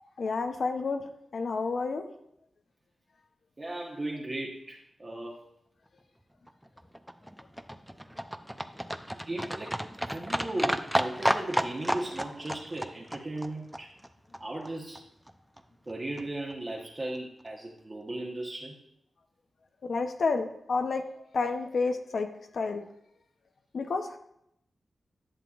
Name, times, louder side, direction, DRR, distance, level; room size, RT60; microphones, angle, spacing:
voice 1, 0.2-1.0 1.3-2.0 19.8-21.0 21.3-22.8 23.7-24.2, left 4 dB, 70° left, 6 dB, 0.7 m, -30 dB
voice 2, 3.6-5.4 9.1-13.9 14.4-15.0 15.9-18.8, right 1 dB, 30° right, -4 dB, 1.1 m, -37 dB
Livestock farm animals working animals, 6.5-14.7 14.9-15.0 15.3-15.4 15.6-15.7 15.9-16.0 16.2-16.3 16.5-16.6 16.8-16.9 17.1-17.2, equal, 5° right, 0.5 m, -32 dB
11.0 x 7.0 x 2.4 m, 0.76 s
wide cardioid pair, 80°, 0 cm